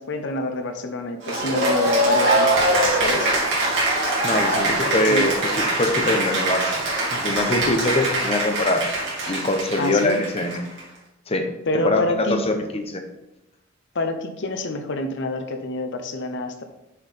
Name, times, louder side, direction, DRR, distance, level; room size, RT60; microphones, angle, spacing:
voice 1, 0.0-2.5 2.8-3.3 5.1-5.2 9.8-10.3 11.7-12.4 13.9-16.6, left 2 dB, 65° left, 7 dB, 0.8 m, -27 dB
Cheering / Applause, 1.2-10.8, right 1 dB, 60° right, 2.8 m, -22 dB
voice 2, 4.2-5.3 5.8-6.7 7.1-8.8 9.3-10.6 11.3-11.5 11.7-13.0, left 2 dB, 30° left, 4 dB, 0.9 m, -23 dB
6.7 x 5.6 x 4.2 m, 0.96 s
head